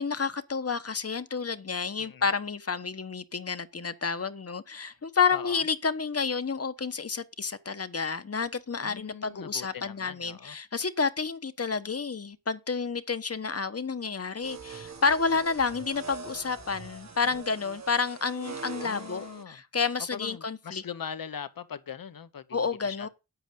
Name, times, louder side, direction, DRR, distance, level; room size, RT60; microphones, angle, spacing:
voice 1, 0.0-20.8 22.5-23.1, left 5 dB, 40° left, 1.2 m, -30 dB
voice 2, 5.3-5.6 8.8-10.6 18.8-19.6 20.1-23.1, left 7 dB, 70° left, 1.1 m, -41 dB
sound 1, 14.4-19.4, right 5 dB, 50° right, 1.5 m, -43 dB
9.2 x 8.0 x 5.3 m
cardioid pair, 50°, 36 cm